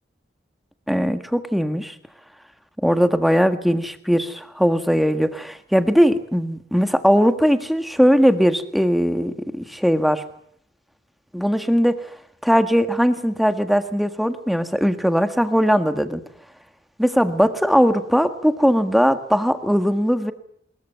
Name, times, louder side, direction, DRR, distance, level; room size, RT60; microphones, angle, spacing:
voice 1, 0.9-1.9 2.8-10.2 11.3-12.0 12.4-16.2 17.0-20.3, equal, ahead, 8 dB, 1.6 m, -19 dB
24.5 x 21.5 x 9.3 m, 0.67 s
head